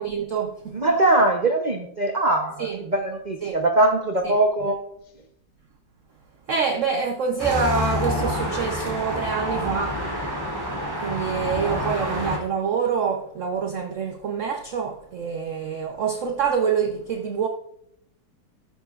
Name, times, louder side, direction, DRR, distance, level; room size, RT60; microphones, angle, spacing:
voice 1, 0.0-0.8 2.6-2.8 3.4-3.5 4.2-4.3 6.5-10.0 11.0-17.5, right 6 dB, 55° right, 0.8 m, -26 dB
voice 2, 0.7-4.8, right 2 dB, 80° right, 0.4 m, -21 dB
sound 1, 7.4-12.4, left 1 dB, 10° right, 3.0 m, -28 dB
14.0 x 11.5 x 2.4 m
omnidirectional pair, 2.1 m